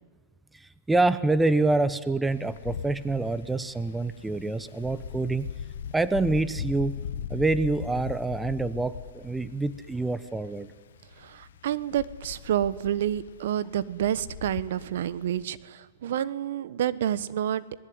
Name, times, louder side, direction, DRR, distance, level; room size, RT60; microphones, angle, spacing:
voice 1, 0.5-5.5 5.9-7.0 7.3-10.7, right 2 dB, 5° right, 14 dB, 1.1 m, -26 dB
Wind, 2.3-15.4, left 8 dB, 75° left, 1.2 m, -40 dB
voice 2, 11.2-17.8, right 11 dB, 70° right, 16 dB, 1.2 m, -29 dB
26.5 x 20.0 x 9.6 m, 1.4 s
hypercardioid pair, 135°, 0 cm